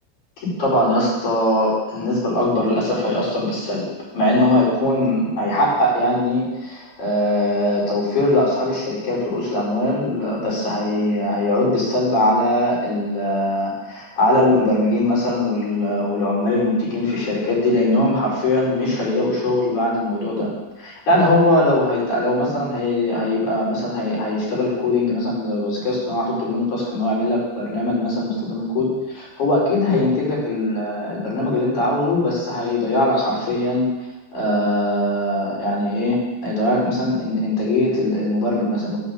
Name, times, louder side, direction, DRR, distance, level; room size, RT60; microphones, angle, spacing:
voice 1, 0.4-3.9 4.1-20.5 20.8-33.9 34.3-39.0, left 1 dB, 40° left, -7 dB, 5.9 m, -21 dB
15.0 x 5.4 x 7.1 m, 1.1 s
omnidirectional pair, 5.3 m